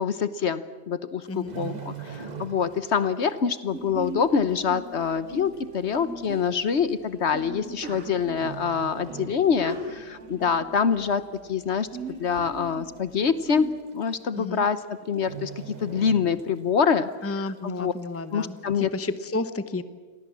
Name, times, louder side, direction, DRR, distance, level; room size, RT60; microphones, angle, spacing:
voice 1, 0.0-11.9 12.2-17.1 17.4-17.9 18.3-18.9, left 6 dB, 60° left, 14 dB, 1.2 m, -25 dB
sound 1, 1.2-3.0 3.2-3.5 4.1-4.2 5.1-5.2 5.4-5.5 6.3-6.5 7.6-8.0 8.3-9.9 10.2-10.4 10.9-11.5 11.8-11.9 12.1-12.2 12.6-12.7 13.7-13.8 14.1-14.4 14.6-14.8 15.2-16.8 17.2-17.3, right 7 dB, 35° right, 1.4 m, -40 dB
voice 2, 1.3-1.8 14.3-14.6 17.2-19.8, left 2 dB, 10° left, 12 dB, 0.9 m, -32 dB
Sneeze, 3.7-13.7, right 2 dB, 85° right, 3.4 m, -40 dB
29.0 x 22.5 x 7.4 m, 1.5 s
omnidirectional pair, 1.4 m